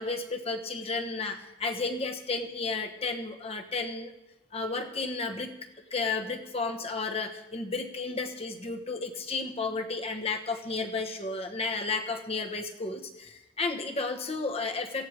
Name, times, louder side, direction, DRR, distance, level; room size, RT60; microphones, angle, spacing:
voice 1, 0.0-4.1 4.5-5.5 5.9-13.0 13.6-15.1, left 3 dB, 30° left, 4 dB, 1.3 m, -32 dB
17.5 x 16.0 x 3.5 m, 0.98 s
head